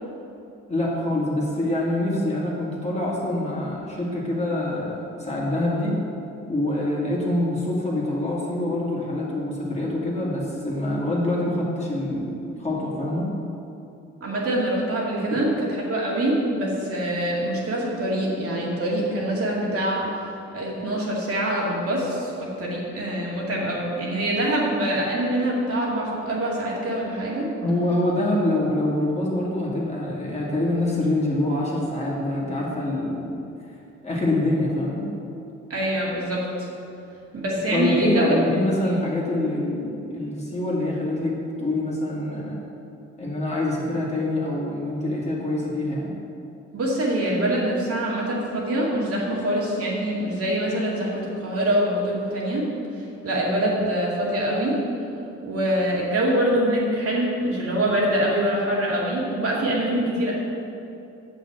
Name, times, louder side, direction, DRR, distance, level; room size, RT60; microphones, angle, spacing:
voice 1, 0.7-6.0 6.5-13.3 15.3-15.4 27.6-33.4 34.0-35.1 37.7-42.6 43.2-46.1, left 1 dB, 20° left, -5 dB, 2.3 m, -25 dB
voice 2, 14.2-20.1 20.5-27.5 35.7-36.7 37.3-38.3 38.8-38.9 46.7-52.7 52.9-54.8 55.4-60.3, right 1 dB, 50° right, -4 dB, 2.3 m, -24 dB
7.2 x 5.8 x 7.6 m, 2.7 s
cardioid pair, 90°, 30 cm